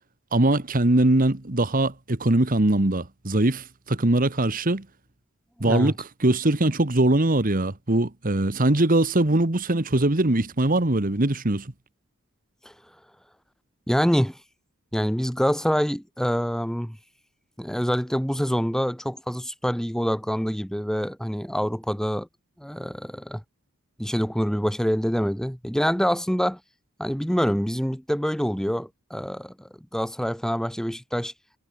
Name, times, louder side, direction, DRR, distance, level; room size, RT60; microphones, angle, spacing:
voice 1, 0.3-4.9 5.6-11.7, right 1 dB, 40° right, 1.5 m, -22 dB
voice 2, 5.6-5.9 12.7-12.8 13.9-14.4 14.9-17.0 17.6-22.3 22.6-23.4 24.0-26.6 27.0-31.3, equal, ahead, 1.8 m, -26 dB
head